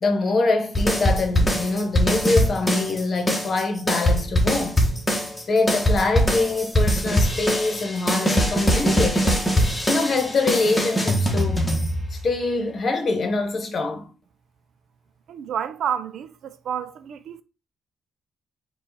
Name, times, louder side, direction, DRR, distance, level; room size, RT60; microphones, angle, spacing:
voice 1, 0.0-4.8 5.5-9.4 9.9-11.6 12.1-14.1, left 3 dB, 45° left, 1.0 m, -24 dB
sound 1, 0.7-3.0 3.3-12.3, equal, 15° left, 1.1 m, -22 dB
voice 2, 15.3-17.4, right 8 dB, 70° right, 0.4 m, -30 dB
4.6 x 2.4 x 4.1 m
cardioid pair, 90°, 0 cm